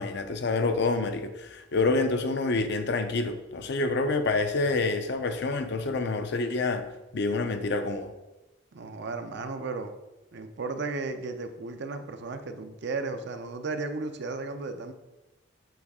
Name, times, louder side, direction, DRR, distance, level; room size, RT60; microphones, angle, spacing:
voice 1, 0.0-6.9 7.1-8.1, left 3 dB, 55° left, 8 dB, 0.5 m, -27 dB
voice 2, 8.7-9.9 10.3-14.9, right 3 dB, 55° right, 8 dB, 0.5 m, -34 dB
7.7 x 4.0 x 3.6 m, 1.1 s
head